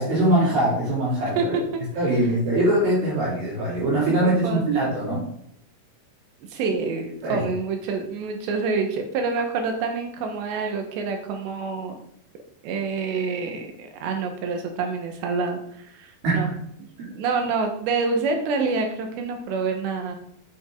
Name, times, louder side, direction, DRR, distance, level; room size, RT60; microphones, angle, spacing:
voice 1, 0.0-1.6 2.0-5.2 7.2-7.5 16.2-16.4, right 1 dB, 60° right, -7 dB, 5.2 m, -22 dB
voice 2, 1.2-2.4 4.2-4.6 6.5-12.0 12.6-16.5 17.1-20.2, right 4 dB, 90° right, 4 dB, 3.6 m, -27 dB
8.9 x 8.8 x 3.9 m, 0.71 s
omnidirectional pair, 4.9 m